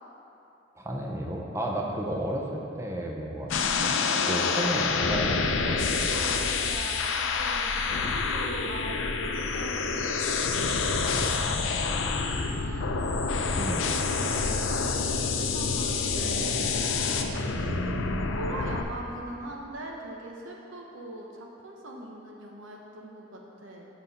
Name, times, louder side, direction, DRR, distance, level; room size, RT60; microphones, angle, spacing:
voice 1, 0.8-3.5 3.8-4.0 4.3-6.1 13.6-14.0 17.6-18.3, right 1 dB, 15° right, -1 dB, 0.6 m, -32 dB
sound 1, 3.5-18.8, left 4 dB, 85° left, 0.5 m, -27 dB
voice 2, 6.1-13.0 14.2-16.8 17.4-17.9 18.2-23.9, right 1 dB, 85° right, -1 dB, 1.0 m, -41 dB
7.6 x 5.4 x 4.1 m, 2.9 s
head